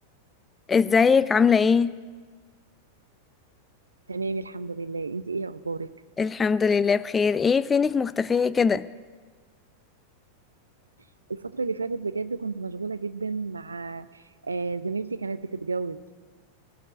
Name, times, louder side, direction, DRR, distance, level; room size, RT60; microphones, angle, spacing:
voice 1, 0.7-1.9 6.2-8.9, left 5 dB, 15° left, 0.3 m, -21 dB
voice 2, 4.1-5.9 11.3-16.0, right 4 dB, 75° right, 0.5 m, -31 dB
17.0 x 7.6 x 9.7 m
figure-of-eight pair, 90°, 0 cm